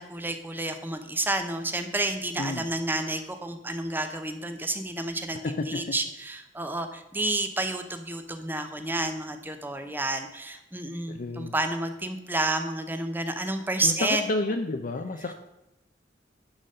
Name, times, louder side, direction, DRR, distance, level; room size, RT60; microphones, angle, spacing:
voice 1, 0.0-14.3, right 2 dB, 10° right, 7 dB, 0.7 m, -30 dB
voice 2, 5.4-5.8 11.1-11.5 13.8-15.3, left 2 dB, 50° left, 6 dB, 0.5 m, -30 dB
10.0 x 4.0 x 6.6 m, 0.90 s
head